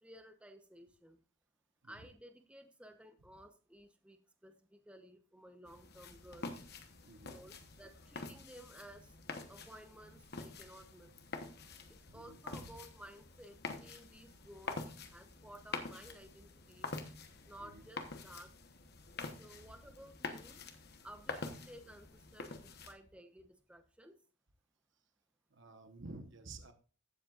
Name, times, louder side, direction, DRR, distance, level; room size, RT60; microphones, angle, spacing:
voice 1, 0.0-1.2 1.8-6.6 7.2-9.2 9.5-11.1 11.9-16.9 17.5-18.6 19.4-20.6 21.0-24.2, right 1 dB, 5° right, 7 dB, 0.9 m, -56 dB
sound 1, 5.7-22.9, left 3 dB, 50° left, 1.1 m, -47 dB
voice 2, 7.0-7.7 12.1-12.8 16.8-17.0 17.6-17.9 25.5-26.7, right 2 dB, 55° right, 7 dB, 1.1 m, -53 dB
14.5 x 7.6 x 2.5 m, 0.38 s
head